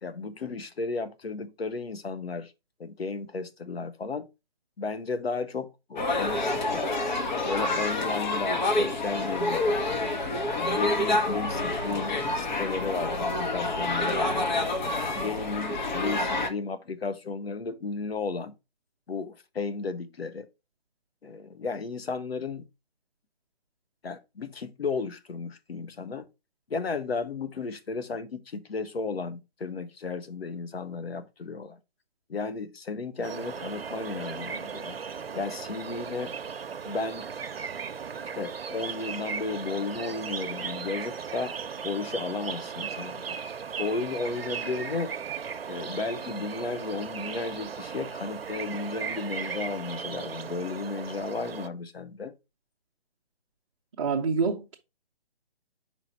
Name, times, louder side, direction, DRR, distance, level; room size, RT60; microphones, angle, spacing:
voice 1, 0.0-2.5 2.8-4.3 4.8-6.9 7.5-9.8 10.6-14.7 15.1-18.5 19.1-20.5 21.2-22.7 24.0-26.2 26.7-31.8 32.3-35.0 35.3-36.3 36.8-37.3 38.3-41.5 41.8-43.4 43.8-45.1 45.7-52.3, left 4 dB, 80° left, 1.1 m, -34 dB
sound 1, 6.0-16.5, left 2 dB, 50° left, 1.3 m, -28 dB
sound 2, 33.2-51.7, right 6 dB, 75° right, 0.7 m, -37 dB
voice 2, 54.0-54.8, right 5 dB, 30° right, 0.7 m, -26 dB
5.7 x 4.6 x 4.0 m
hypercardioid pair, 155°, 30 cm